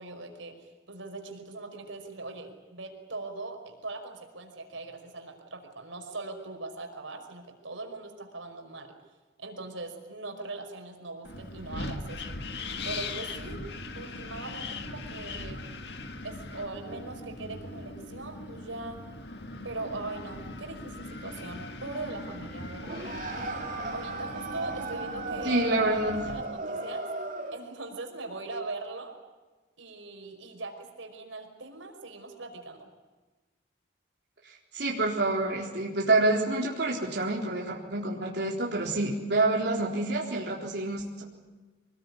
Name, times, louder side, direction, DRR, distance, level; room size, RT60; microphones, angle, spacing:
voice 1, 0.0-9.0 9.4-12.4 12.8-13.6 14.0-15.6 16.2-19.0 19.6-23.1 23.9-25.6 26.3-27.0 27.5-29.1 29.8-32.9, right 3 dB, 90° right, 4 dB, 5.3 m, -40 dB
Wind, 11.2-26.4, left 2 dB, 60° left, 2.0 m, -40 dB
sound 1, 22.8-27.7, right 2 dB, 45° right, 3.2 m, -36 dB
voice 2, 25.4-26.2 34.4-41.2, right 2 dB, 60° right, -2 dB, 4.0 m, -27 dB
25.0 x 21.0 x 9.8 m, 1.3 s
head